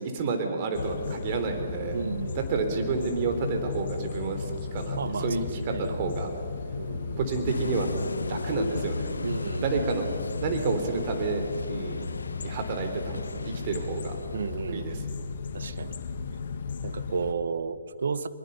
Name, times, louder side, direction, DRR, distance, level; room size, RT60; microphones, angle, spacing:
voice 1, 0.0-2.0 2.4-6.3 7.2-7.9 8.3-9.3 9.6-10.0 10.4-12.1 12.4-14.2 14.7-15.0, right 4 dB, 40° right, 5 dB, 3.6 m, -30 dB
sound 1, 0.7-17.3, left 4 dB, 60° left, 1.5 m, -35 dB
voice 2, 1.9-2.5 4.9-5.3 5.6-5.9 6.8-7.2 9.2-9.7 14.3-14.9 15.5-15.9 16.8-18.3, right 5 dB, 70° right, 13 dB, 1.1 m, -33 dB
sound 2, 7.5-14.7, left 3 dB, 85° left, 0.7 m, -36 dB
23.0 x 22.0 x 5.6 m, 2.2 s
figure-of-eight pair, 135°, 0 cm